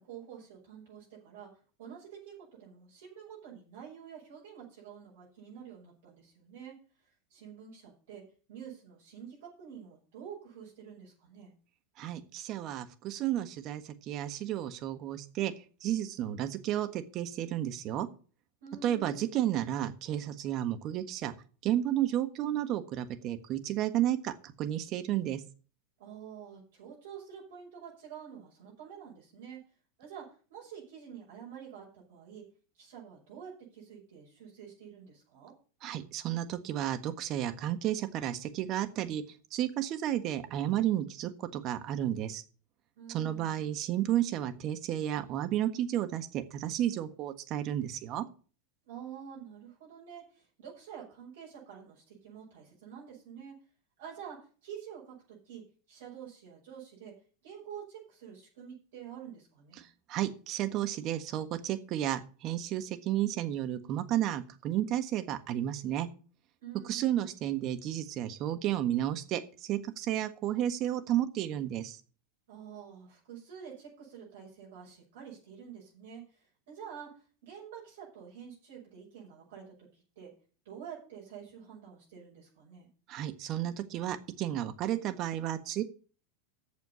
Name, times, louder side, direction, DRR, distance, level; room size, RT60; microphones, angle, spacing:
voice 1, 0.0-1.5 1.8-6.7 7.3-8.2 8.5-11.5 18.6-19.3 26.0-29.6 30.0-30.2 30.5-32.4 32.7-35.5 43.0-43.6 48.8-53.5 54.0-55.6 55.9-57.1 57.4-59.8 66.6-67.3 72.5-77.1 77.4-80.3 80.6-82.9, right 8 dB, 70° right, -5 dB, 5.8 m, -48 dB
voice 2, 12.0-15.5 15.8-18.1 18.8-21.3 21.6-25.4 35.8-39.2 39.5-42.4 43.1-48.2 59.8-66.1 66.8-72.0 83.1-85.8, right 12 dB, 45° right, 10 dB, 1.4 m, -32 dB
8.5 x 6.9 x 8.2 m, 0.39 s
hypercardioid pair, 95°, 0 cm